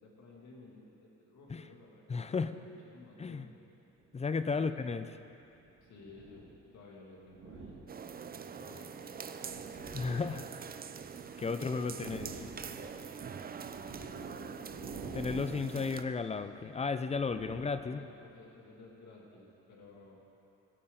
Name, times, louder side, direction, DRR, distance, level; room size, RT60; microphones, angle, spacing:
voice 1, 0.0-3.6 4.4-5.1 5.8-7.8 8.4-10.5 11.4-13.0 14.1-14.9 17.7-20.2, left 2 dB, 65° left, -2 dB, 2.3 m, -56 dB
voice 2, 2.1-2.6 3.2-3.4 4.1-5.1 9.9-10.5 11.4-12.3 15.1-18.1, left 4 dB, 20° left, 11 dB, 0.4 m, -34 dB
sound 1, 4.0-4.2 5.2-6.7 7.2-8.4 9.0-11.4 11.7-18.3, right 3 dB, 80° right, 1.8 m, -49 dB
sound 2, 7.9-16.0, right 6 dB, 30° right, 0.5 m, -44 dB
16.0 x 8.7 x 3.9 m, 2.8 s
cardioid pair, 90°, 30 cm